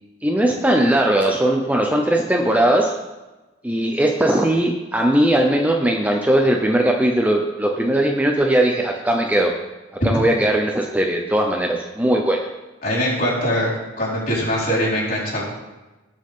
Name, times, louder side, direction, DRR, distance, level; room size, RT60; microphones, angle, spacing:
voice 1, 0.2-2.9 3.6-9.5 10.0-12.4, right 1 dB, 10° right, 1 dB, 0.7 m, -19 dB
voice 2, 12.8-13.7 14.0-15.4, equal, 45° left, -7 dB, 4.6 m, -22 dB
19.5 x 6.5 x 3.8 m, 1.1 s
head